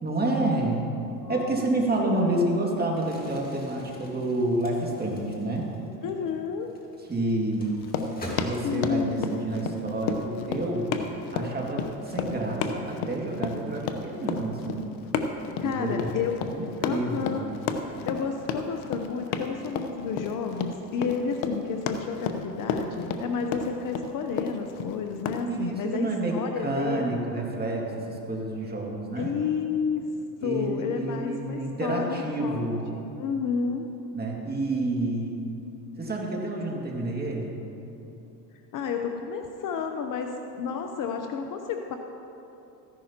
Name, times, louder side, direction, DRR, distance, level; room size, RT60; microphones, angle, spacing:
voice 1, 0.0-0.9 1.3-5.7 7.1-7.7 8.4-10.9 11.3-14.8 15.6-16.2 16.5-17.4 25.4-29.4 30.4-32.8 34.1-35.4 36.0-37.6, right 2 dB, 20° right, -1 dB, 2.1 m, -29 dB
voice 2, 1.2-1.7 2.0-2.3 6.0-6.7 8.6-9.2 15.6-16.3 16.8-17.5 18.0-27.2 29.2-30.0 30.4-32.7 33.1-33.9 38.7-42.0, left 6 dB, 40° left, 5 dB, 0.8 m, -31 dB
Crumpling crinkling, 3.0-9.1, equal, 20° left, 2.2 m, -44 dB
Run, 7.8-25.4, left 6 dB, 60° left, 1.0 m, -32 dB
14.5 x 11.0 x 2.9 m, 2.8 s
hypercardioid pair, 90°, 49 cm